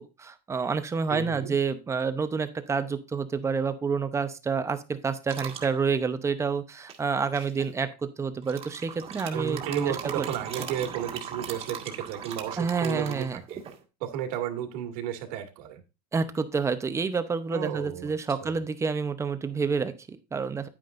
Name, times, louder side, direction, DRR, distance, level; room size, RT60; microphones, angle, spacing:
voice 1, 0.0-9.6 9.9-10.3 12.6-13.4 16.1-20.7, right 5 dB, 15° right, 10 dB, 0.8 m, -29 dB
voice 2, 1.1-1.5 9.3-13.6 14.0-15.8 17.5-18.1 18.4-18.6, right 9 dB, 65° right, 5 dB, 2.2 m, -33 dB
sound 1, 5.3-5.7 6.9-7.6 8.4-13.8, right 7 dB, 30° right, 1.7 m, -39 dB
9.7 x 9.3 x 2.6 m, 0.29 s
supercardioid pair, 150°, 21 cm